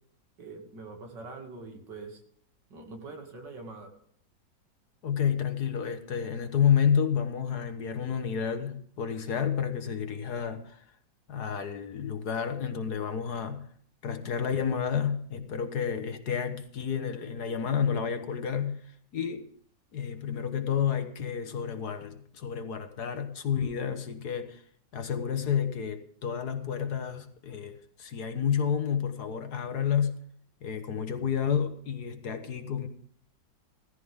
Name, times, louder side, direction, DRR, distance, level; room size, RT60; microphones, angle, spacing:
voice 1, 0.4-2.2 2.7-3.9, right 3 dB, 70° right, 3.1 m, -43 dB
voice 2, 5.0-10.8 11.3-13.7 14.0-18.8 19.1-19.5 19.9-24.6 24.9-30.2 30.6-32.9, left 7 dB, 60° left, 1.7 m, -30 dB
16.5 x 14.5 x 3.7 m
omnidirectional pair, 2.0 m